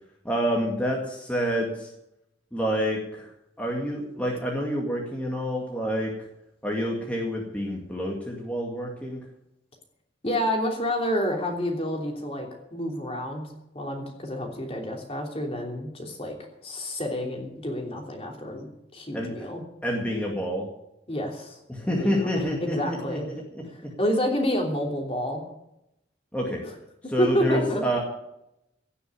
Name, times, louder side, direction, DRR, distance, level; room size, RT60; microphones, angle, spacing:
voice 1, 0.2-1.9 2.5-3.3 3.6-6.1 6.6-9.2 19.1-19.5 19.8-20.7 21.7-23.6 26.3-26.6 27.1-28.0, equal, 10° left, -2 dB, 2.1 m, -28 dB
voice 2, 10.2-13.5 13.7-16.3 16.6-19.6 21.1-21.6 21.8-23.2 23.7-25.4 27.0-27.8, equal, 30° left, 1 dB, 3.1 m, -29 dB
16.5 x 6.9 x 9.6 m, 0.84 s
head